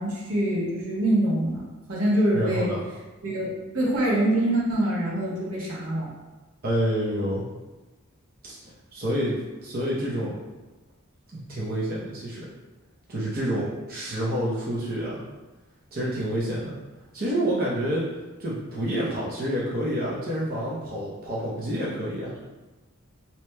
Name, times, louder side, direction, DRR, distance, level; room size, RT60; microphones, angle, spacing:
voice 1, 0.0-2.7 3.2-6.1, right 1 dB, 80° right, -5 dB, 1.1 m, -25 dB
voice 2, 2.3-2.8 6.6-7.5 8.4-8.6 8.9-9.4 9.6-10.4 11.3-12.5 13.1-15.2 15.9-16.8 17.1-18.1 18.4-22.4, equal, 45° right, -7 dB, 0.7 m, -28 dB
4.7 x 2.9 x 2.2 m, 1.2 s
head